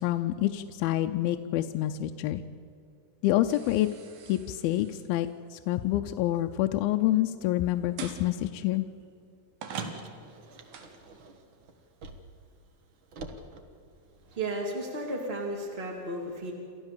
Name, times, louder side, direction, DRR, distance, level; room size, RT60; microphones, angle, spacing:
voice 1, 0.0-2.4 3.2-3.9 4.3-8.9, left 14 dB, 85° left, 6 dB, 2.5 m, -27 dB
sound 1, 3.5-6.5 8.0-8.3 9.0-9.1 9.6-10.9, right 5 dB, 75° right, 3.5 m, -43 dB
Car, 9.7-12.5 12.7-14.6, right 3 dB, 60° right, 1.3 m, -47 dB
voice 2, 14.3-16.5, right 1 dB, 25° right, -1 dB, 1.6 m, -34 dB
29.0 x 14.0 x 7.3 m, 2.5 s
omnidirectional pair, 4.3 m